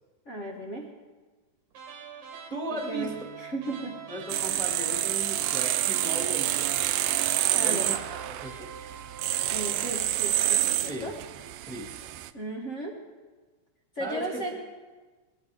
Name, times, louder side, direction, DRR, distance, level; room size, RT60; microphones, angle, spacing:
voice 1, 0.2-0.9 2.7-4.0 7.5-8.0 9.4-11.1 11.9-12.9 13.9-14.5, right 1 dB, 55° left, 0 dB, 0.8 m, -36 dB
sound 1, 1.7-10.0, right 6 dB, 60° right, 2.5 m, -45 dB
voice 2, 2.5-3.1 4.1-6.7 7.6-8.7 10.9-11.1 11.7-11.9 14.0-14.3, right 1 dB, ahead, 0 dB, 1.4 m, -36 dB
Bass guitar, 3.0-9.2, right 7 dB, 85° left, 4.3 m, -61 dB
sound 2, 4.3-12.3, right 13 dB, 85° right, 1.5 m, -28 dB
21.5 x 16.0 x 3.6 m, 1.3 s
omnidirectional pair, 3.6 m